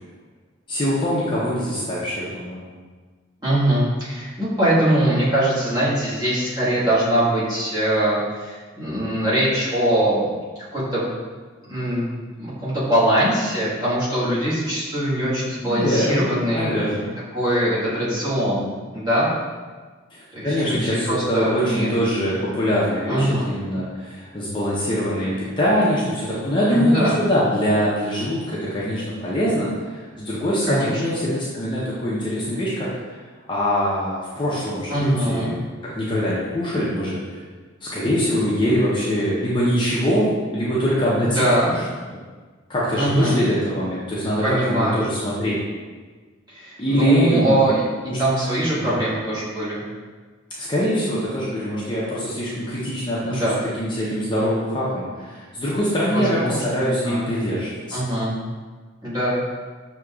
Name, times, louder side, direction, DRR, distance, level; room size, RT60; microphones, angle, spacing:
voice 1, 0.7-2.6 15.6-17.1 20.1-32.9 33.5-35.7 35.9-37.2 37.8-40.3 40.5-41.5 42.7-45.6 46.8-47.6 48.0-48.2 48.8-49.0 50.6-53.4 53.8-58.0, equal, 25° left, -8 dB, 0.6 m, -23 dB
voice 2, 3.4-10.2 10.7-11.1 11.7-16.7 17.3-19.3 20.3-21.9 23.1-23.4 26.7-27.1 30.7-30.9 34.9-35.5 41.2-41.7 42.9-43.4 44.4-45.0 46.5-47.9 48.2-49.8 53.3-53.5 56.1-57.4 57.9-58.3 59.0-59.4, right 1 dB, 20° right, -11 dB, 1.4 m, -22 dB
6.4 x 2.8 x 2.3 m, 1.4 s
head